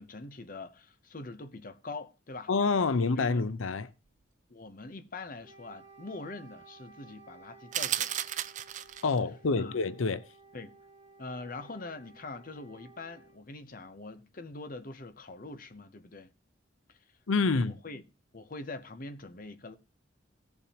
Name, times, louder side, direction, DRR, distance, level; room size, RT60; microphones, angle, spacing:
voice 1, 0.0-2.5 3.1-3.4 4.5-8.1 9.5-9.8 10.5-10.8 11.2-16.3 16.9-17.0 17.5-18.0 18.3-19.8, left 3 dB, 45° left, 0.8 m, -43 dB
voice 2, 2.5-3.9 9.0-10.2 17.3-17.7, left 4 dB, 90° left, 0.6 m, -27 dB
Wind instrument woodwind instrument, 5.4-13.4, right 4 dB, 15° right, 2.8 m, -56 dB
sound 1, 7.7-9.2, right 11 dB, 40° right, 0.4 m, -33 dB
17.0 x 7.0 x 2.9 m
head